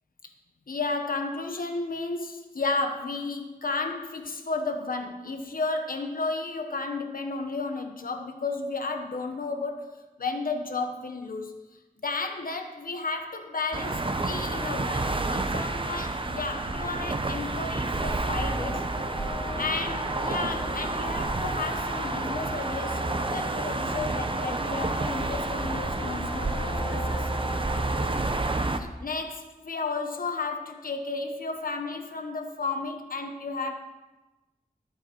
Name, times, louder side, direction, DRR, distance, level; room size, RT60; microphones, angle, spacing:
voice 1, 0.7-11.6 12.0-18.8 19.6-27.3 28.7-33.7, left 3 dB, 75° left, 5 dB, 1.2 m, -33 dB
sound 1, 13.7-28.8, right 2 dB, 35° right, 0.8 m, -29 dB
sound 2, 18.2-28.3, left 2 dB, 30° left, 1.7 m, -40 dB
12.0 x 8.6 x 4.6 m, 1.1 s
wide cardioid pair, 70°, 15 cm